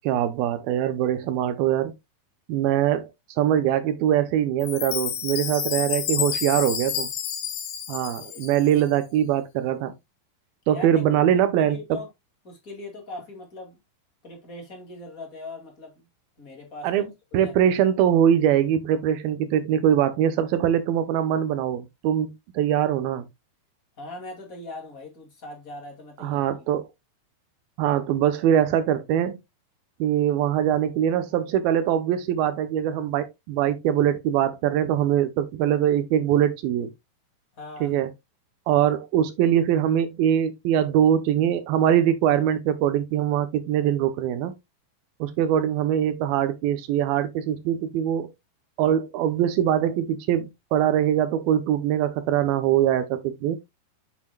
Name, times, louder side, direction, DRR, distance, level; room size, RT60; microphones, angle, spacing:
voice 1, 0.0-1.9 2.5-3.1 3.4-7.1 7.9-9.9 10.7-12.0 16.8-23.3 26.2-26.9 27.8-29.4 30.0-36.9 37.8-38.1 38.7-44.5 45.2-48.3 48.8-53.6, right 10 dB, 80° right, 2.6 m, -22 dB
Chime, 4.6-8.8, left 10 dB, 80° left, 3.1 m, -30 dB
voice 2, 10.7-11.3 11.6-12.1 12.4-13.8 14.2-15.9 16.4-17.0 17.3-17.5 24.0-26.7 37.6-37.9, left 2 dB, 30° left, 2.1 m, -40 dB
7.8 x 7.3 x 2.2 m
omnidirectional pair, 4.3 m